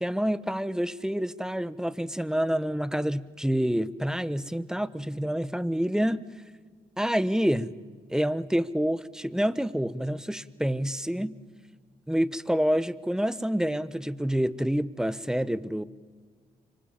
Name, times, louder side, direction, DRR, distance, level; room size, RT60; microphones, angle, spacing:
voice 1, 0.0-6.2 7.0-7.7 8.1-11.3 12.1-15.8, equal, 5° right, 16 dB, 1.2 m, -27 dB
26.0 x 25.0 x 7.4 m, 1.5 s
hypercardioid pair, 45°, 18 cm